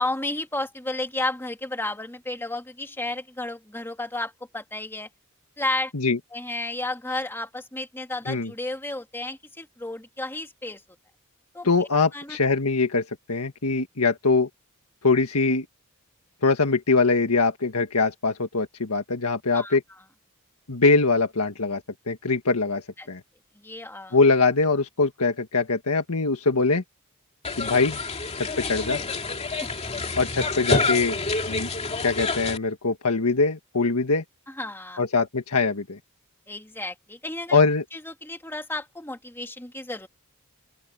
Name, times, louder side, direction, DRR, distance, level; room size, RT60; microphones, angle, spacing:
voice 1, 0.0-5.1 5.6-5.9 6.3-10.8 11.5-12.4 19.5-19.8 23.0-23.1 23.6-24.2 29.6-29.7 29.9-30.0 34.5-35.0 36.5-37.6 37.9-40.1, left 2 dB, 10° left, 2.1 m, -32 dB
voice 2, 11.6-14.5 15.0-15.6 16.4-19.8 20.7-21.8 22.1-23.2 24.1-26.8 27.6-28.0 28.3-29.0 30.2-31.2 31.5-31.7 32.0-34.2 35.0-36.0 37.5-37.8, left 3 dB, 80° left, 1.7 m, -22 dB
sound 1, 27.4-32.6, left 3 dB, 30° left, 2.5 m, -28 dB
open air
head